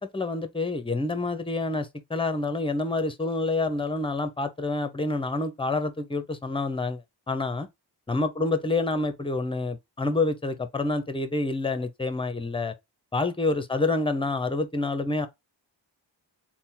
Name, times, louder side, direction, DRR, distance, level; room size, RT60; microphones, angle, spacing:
voice 1, 0.1-7.7 8.1-12.7 13.1-15.3, left 2 dB, 10° left, 0.8 m, -28 dB
3.5 x 2.3 x 4.3 m
cardioid pair, 55°, 45 cm